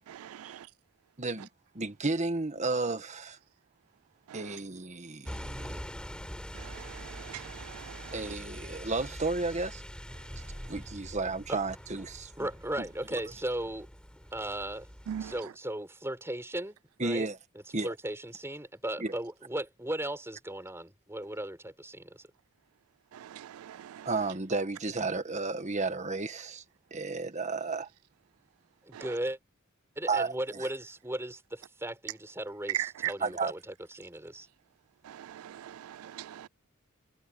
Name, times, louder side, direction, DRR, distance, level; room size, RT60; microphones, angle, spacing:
voice 1, 1.2-1.5 1.7-3.4 4.3-5.8 8.1-9.8 10.7-12.5 12.8-12.9 17.0-17.4 17.7-17.9 19.0-19.1 24.0-26.6 26.9-27.9 30.1-30.3 33.2-33.5, right 3 dB, 35° right, 1.5 m, -32 dB
sound 1, 5.3-15.4, equal, 5° left, 4.3 m, -44 dB
voice 2, 12.4-13.9 14.3-14.9 15.2-17.3 17.8-22.2 28.8-29.4 30.0-33.6 33.9-34.5, right 1 dB, 10° right, 5.5 m, -36 dB
voice 3, 23.3-23.6 35.4-35.6 35.9-36.5, right 9 dB, 90° right, 0.3 m, -41 dB
head